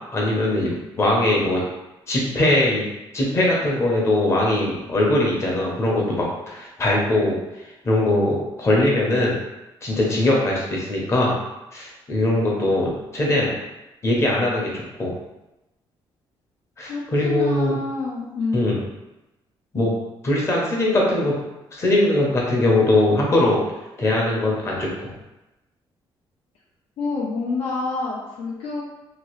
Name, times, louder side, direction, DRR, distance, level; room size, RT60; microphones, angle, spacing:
voice 1, 0.1-1.6 2.1-2.8 3.1-7.4 7.8-9.4 9.8-11.4 11.7-13.5 14.0-15.1 16.8-17.8 18.5-18.8 19.7-19.9 20.2-21.4 21.7-23.6 24.0-25.1, left 1 dB, 30° left, -3 dB, 0.7 m, -21 dB
voice 2, 16.9-18.7 27.0-28.8, left 3 dB, 80° left, -5 dB, 0.5 m, -27 dB
2.9 x 2.4 x 3.0 m, 0.99 s
cardioid pair, 160°, 10 cm